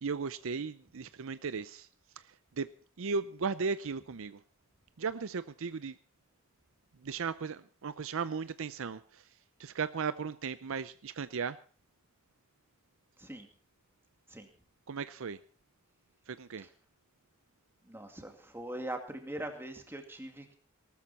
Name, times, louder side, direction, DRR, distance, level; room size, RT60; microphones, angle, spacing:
voice 1, 0.0-1.9 2.2-2.7 3.0-4.4 5.0-6.0 7.0-9.3 9.6-11.6 14.9-15.4 16.3-16.7, right 5 dB, 65° right, 14 dB, 0.6 m, -36 dB
voice 2, 17.8-20.5, right 1 dB, 10° right, 4 dB, 2.3 m, -41 dB
19.0 x 13.0 x 4.2 m, 0.41 s
head